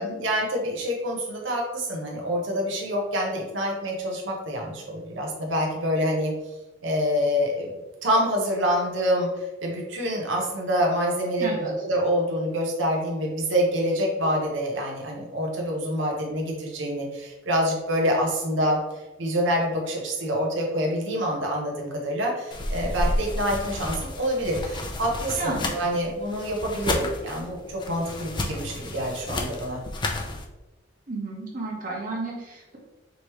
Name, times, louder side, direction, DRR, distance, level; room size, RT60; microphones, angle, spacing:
voice 1, 0.0-6.3 6.8-7.7 8.0-9.3 9.6-18.8 19.2-29.8, equal, 85° right, 0 dB, 1.0 m, -26 dB
voice 2, 11.4-11.7 25.4-25.7 31.1-32.8, right 2 dB, 45° right, -3 dB, 1.3 m, -32 dB
sound 1, 22.5-30.5, left 1 dB, 25° left, 0.4 m, -31 dB
5.1 x 3.1 x 3.1 m, 1.1 s
head